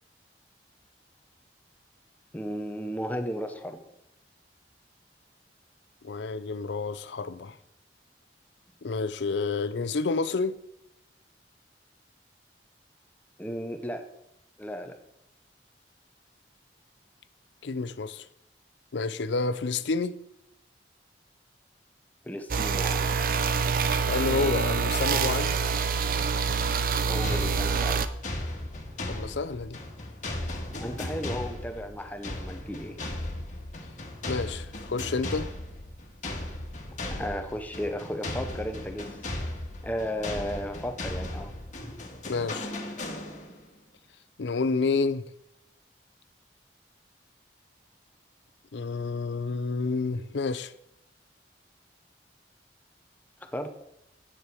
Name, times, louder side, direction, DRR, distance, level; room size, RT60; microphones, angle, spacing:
voice 1, 2.3-3.8 13.4-14.1 14.6-14.9 22.2-23.0 27.1-28.0 30.8-33.0 37.1-39.1 39.8-41.5 53.5-53.7, equal, 10° left, 0.7 m, -34 dB
voice 2, 6.0-7.6 8.8-10.6 17.6-18.3 18.9-20.2 24.1-25.6 29.1-29.8 34.3-35.5 42.3-42.7 44.4-45.3 48.7-50.7, left 4 dB, 80° left, 0.5 m, -29 dB
sound 1, 22.5-28.1, right 5 dB, 50° right, 0.6 m, -26 dB
sound 2, 27.2-43.7, left 1 dB, 45° left, 1.7 m, -37 dB
9.9 x 8.5 x 4.6 m
head